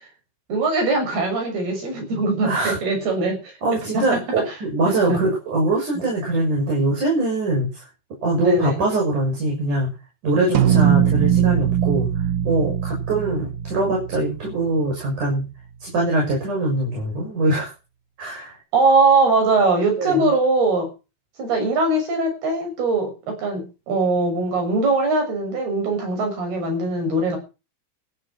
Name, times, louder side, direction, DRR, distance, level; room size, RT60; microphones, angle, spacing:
voice 1, 0.5-4.5 4.9-5.2 8.4-8.8 18.7-20.9 21.4-27.4, right 3 dB, 75° right, 4 dB, 8.7 m, -21 dB
voice 2, 2.4-2.8 3.6-7.8 8.2-9.9 10.2-12.1 12.4-15.4 15.8-17.7 18.2-18.6 20.0-20.3, right 2 dB, 50° right, -2 dB, 8.4 m, -22 dB
sound 1, 10.5-15.1, right 9 dB, 90° right, 1.2 m, -21 dB
14.5 x 12.0 x 6.1 m, 0.31 s
omnidirectional pair, 4.5 m